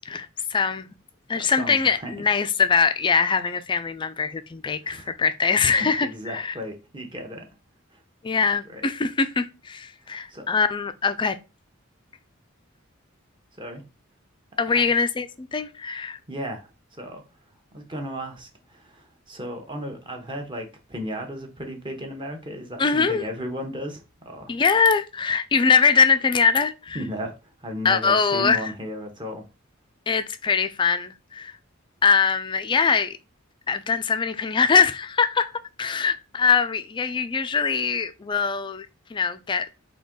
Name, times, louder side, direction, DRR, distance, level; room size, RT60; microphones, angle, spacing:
voice 1, 0.1-0.9 1.3-6.5 8.2-11.4 14.6-16.2 22.8-23.2 24.5-27.0 27.8-28.7 30.1-31.5 32.0-33.2 33.7-35.5 35.8-39.7, left 5 dB, 25° left, 0.3 m, -22 dB
voice 2, 1.4-2.1 4.8-5.1 5.7-7.4 7.9-8.0 8.7-8.8 10.0-10.5 13.6-13.8 14.7-14.9 16.3-17.2 17.7-24.5 26.9-29.5, equal, 25° right, 0.8 m, -35 dB
4.0 x 2.9 x 3.7 m
head